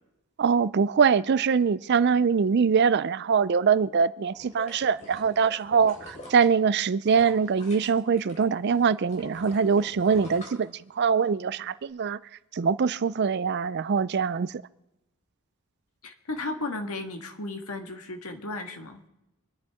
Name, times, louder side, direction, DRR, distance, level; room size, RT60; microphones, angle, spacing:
voice 1, 0.4-12.2 12.5-14.6, right 6 dB, 50° right, 0.4 m, -23 dB
sound 1, 4.3-8.4 8.7-11.3 11.7-11.8, left 1 dB, 35° left, 3.7 m, -46 dB
voice 2, 16.0-19.0, left 2 dB, 80° left, 1.6 m, -35 dB
25.5 x 10.5 x 3.6 m
head